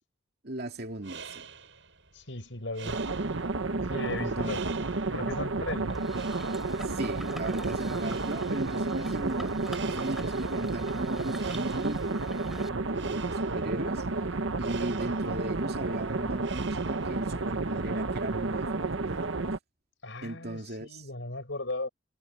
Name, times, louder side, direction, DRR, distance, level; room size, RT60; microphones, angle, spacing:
voice 1, 0.4-1.5 4.2-4.7 6.8-12.3 12.6-19.3 20.2-21.0, right 1 dB, 55° right, 2.6 m, -37 dB
sound 1, 0.8-17.4, right 6 dB, 75° right, 7.4 m, -48 dB
voice 2, 2.1-3.0 3.9-4.6 5.1-6.0 20.0-21.9, left 2 dB, 70° left, 5.8 m, -37 dB
sound 2, 2.8-19.6, right 3 dB, 90° right, 1.1 m, -31 dB
sound 3, 5.9-12.7, equal, ahead, 4.0 m, -47 dB
head